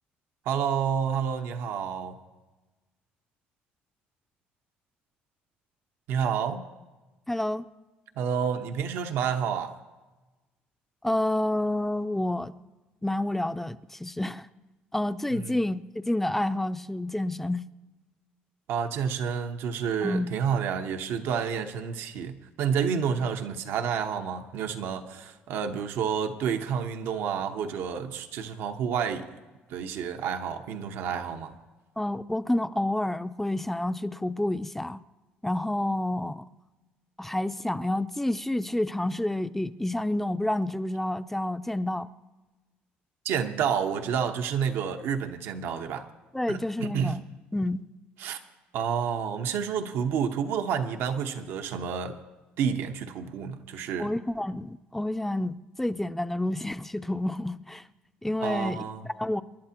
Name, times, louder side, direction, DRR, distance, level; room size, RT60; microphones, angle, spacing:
voice 1, 0.4-2.2 6.1-6.6 8.2-9.7 15.3-15.6 18.7-29.3 29.7-31.5 43.2-46.1 46.5-47.2 48.2-48.4 48.7-52.2 52.6-54.1 58.4-59.1, right 7 dB, 75° right, 1.0 m, -29 dB
voice 2, 7.3-7.6 11.0-12.5 13.0-14.5 14.9-17.6 20.0-20.3 32.0-35.0 35.4-36.4 37.2-42.1 46.3-47.2 47.5-47.9 54.0-57.8 58.2-58.8 59.2-59.4, left 1 dB, 5° left, 0.5 m, -29 dB
28.0 x 11.5 x 2.9 m
cardioid pair, 100°, 4 cm